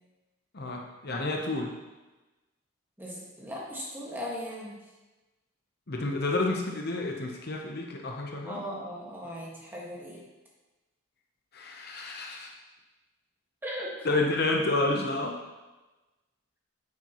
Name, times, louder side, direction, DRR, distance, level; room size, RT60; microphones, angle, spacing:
voice 1, 0.5-1.8 5.9-8.6 11.5-12.5 14.0-15.4, left 2 dB, 50° left, 1 dB, 0.8 m, -30 dB
voice 2, 3.0-4.8 8.5-10.2 13.6-14.1, equal, 10° right, -4 dB, 1.6 m, -38 dB
9.5 x 7.4 x 3.0 m, 1.1 s
head